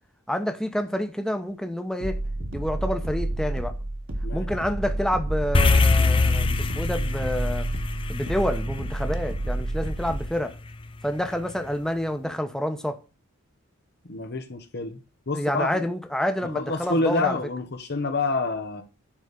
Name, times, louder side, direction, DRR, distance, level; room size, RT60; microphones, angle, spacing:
voice 1, 0.3-2.2 2.5-3.7 4.3-7.7 8.1-10.5 11.0-13.0 15.3-17.4, equal, 5° left, 1.1 m, -28 dB
sound 1, 2.0-10.3, right 1 dB, 65° right, 2.1 m, -30 dB
sound 2, 5.5-10.1, left 3 dB, 25° left, 0.7 m, -23 dB
voice 2, 14.0-15.0 15.3-15.8 16.5-18.8, left 2 dB, 55° left, 1.1 m, -27 dB
10.5 x 4.2 x 6.7 m
head